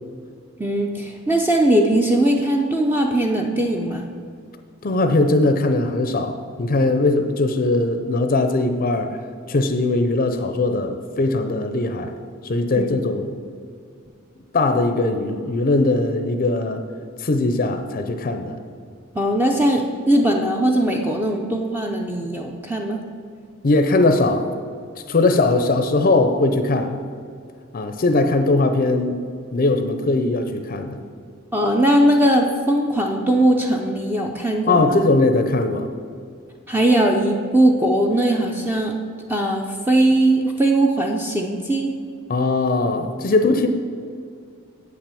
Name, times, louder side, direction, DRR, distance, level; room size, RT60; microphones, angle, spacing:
voice 1, 0.6-4.1 12.8-12.9 19.1-23.0 31.5-35.0 36.7-39.0 39.3-41.9, right 1 dB, 10° right, 1 dB, 0.5 m, -19 dB
voice 2, 4.8-9.2 9.5-12.1 12.4-13.3 14.5-16.8 17.2-18.6 23.6-24.5 25.1-27.0 27.7-29.2 29.5-31.0 34.7-35.9 42.3-43.7, left 2 dB, 45° left, 7 dB, 0.5 m, -20 dB
8.0 x 5.9 x 6.9 m, 2.2 s
head